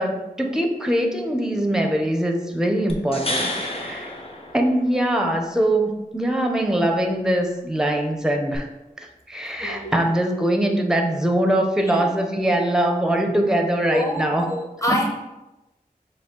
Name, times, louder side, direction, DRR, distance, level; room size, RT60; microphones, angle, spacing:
voice 1, 0.0-4.1 4.5-8.7 9.3-14.4 14.9-15.0, right 1 dB, 5° right, 3 dB, 0.6 m, -22 dB
sound 1, 2.9-5.2 8.5-8.6, left 1 dB, 40° left, 0.7 m, -30 dB
voice 2, 9.6-10.0 11.9-12.0 13.9-15.1, left 1 dB, 20° left, -1 dB, 0.9 m, -26 dB
5.1 x 2.3 x 3.7 m, 1.0 s
wide cardioid pair, 55°, 16 cm